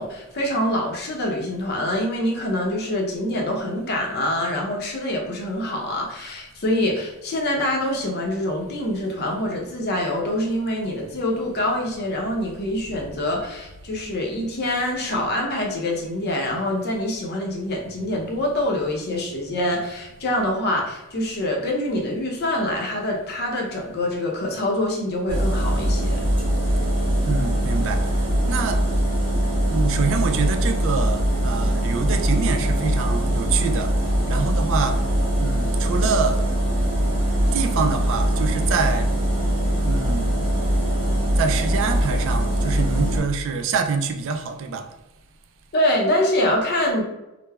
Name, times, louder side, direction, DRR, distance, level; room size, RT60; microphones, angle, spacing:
voice 1, 0.0-26.2 45.7-47.0, left 1 dB, 50° left, 0 dB, 0.6 m, -25 dB
sound 1, 25.3-43.2, right 1 dB, 25° right, 1.0 m, -22 dB
voice 2, 27.2-28.0 28.5-28.8 29.7-33.9 34.3-35.0 35.4-36.4 37.5-39.1 39.9-40.4 41.4-44.8, right 5 dB, 65° right, 5 dB, 0.3 m, -25 dB
3.3 x 2.0 x 2.2 m, 0.99 s
head